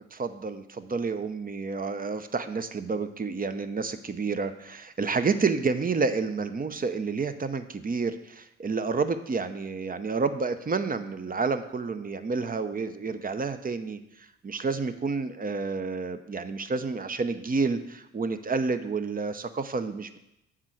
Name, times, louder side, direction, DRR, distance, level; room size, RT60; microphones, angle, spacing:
voice 1, 0.1-20.2, right 4 dB, 30° right, 10 dB, 0.7 m, -29 dB
7.5 x 4.5 x 6.3 m, 0.85 s
hypercardioid pair, 50°, 31 cm